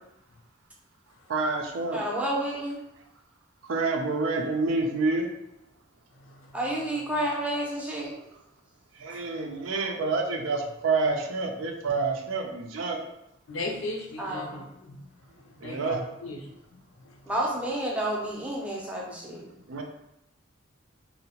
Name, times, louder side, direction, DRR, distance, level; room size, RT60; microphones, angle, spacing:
voice 1, 1.3-2.0 3.6-5.3 8.9-13.0 15.6-16.0 19.7-19.8, right 3 dB, 85° right, 0.5 m, -28 dB
voice 2, 1.9-2.8 6.5-8.1 14.2-14.6 17.3-19.5, right 1 dB, 5° right, 0.5 m, -30 dB
voice 3, 6.1-6.6 13.5-15.1 15.3-17.2 19.5-19.6, left 2 dB, 75° left, 0.4 m, -38 dB
2.7 x 2.0 x 2.8 m
head